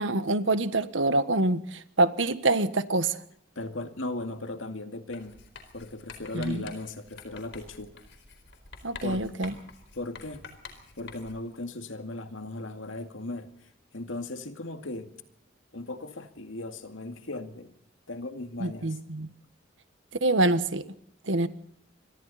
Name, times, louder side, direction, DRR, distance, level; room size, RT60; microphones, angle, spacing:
voice 1, 0.0-3.2 6.3-6.6 8.8-9.5 18.6-19.3 20.2-20.8 21.3-21.5, right 2 dB, 70° right, 1.4 m, -26 dB
voice 2, 3.6-5.4 5.7-8.0 9.0-9.3 9.9-10.5 11.0-13.5 13.9-15.1 15.7-17.7 18.1-19.0, left 2 dB, 85° left, 2.2 m, -37 dB
Writing, 5.1-11.5, left 4 dB, 65° left, 4.3 m, -48 dB
28.5 x 24.0 x 4.2 m
head